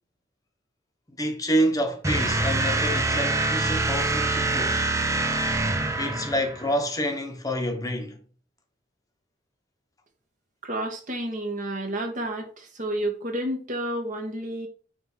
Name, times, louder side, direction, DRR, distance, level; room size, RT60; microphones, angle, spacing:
voice 1, 1.2-4.8 6.0-8.2, equal, 20° left, 1.3 m, -28 dB
sound 1, 2.0-6.7, right 2 dB, 15° right, 0.8 m, -25 dB
voice 2, 10.6-14.7, right 1 dB, 40° right, 1.9 m, -30 dB
9.3 x 3.6 x 4.5 m
head